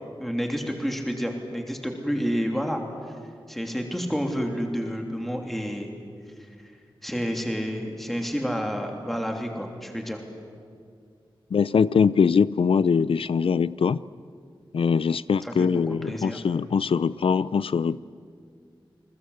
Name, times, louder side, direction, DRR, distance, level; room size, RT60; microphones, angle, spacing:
voice 1, 0.2-2.8 3.5-5.9 6.4-6.5 7.0-10.2 15.4-16.4, equal, ahead, 2 dB, 3.0 m, -29 dB
voice 2, 11.5-14.0 14.7-18.0, left 6 dB, 85° left, 18 dB, 0.5 m, -22 dB
29.0 x 21.0 x 8.0 m, 2.2 s
wide cardioid pair, 95°, 9 cm